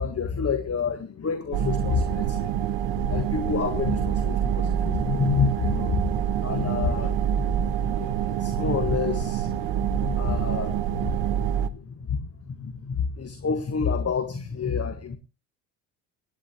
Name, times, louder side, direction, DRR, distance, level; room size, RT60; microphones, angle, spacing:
voice 1, 0.0-15.2, left 5 dB, 30° left, 9 dB, 1.7 m, -29 dB
sound 1, 1.5-11.7, right 10 dB, 65° right, 1.2 m, -26 dB
18.0 x 10.0 x 3.0 m, 0.31 s
supercardioid pair, 80°, 47 cm